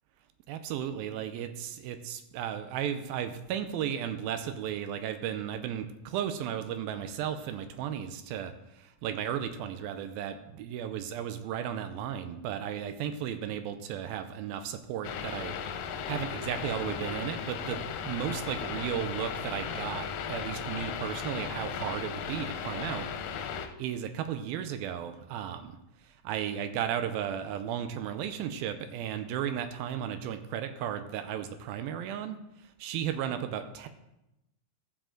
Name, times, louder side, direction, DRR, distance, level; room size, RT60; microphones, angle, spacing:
voice 1, 0.5-15.5 16.1-23.1 23.4-25.7 26.2-32.4 32.8-33.9, right 9 dB, 85° right, 8 dB, 2.5 m, -35 dB
sound 1, 15.0-23.7, left 7 dB, 80° left, 2.4 m, -36 dB
13.0 x 7.5 x 3.8 m, 0.91 s
omnidirectional pair, 4.2 m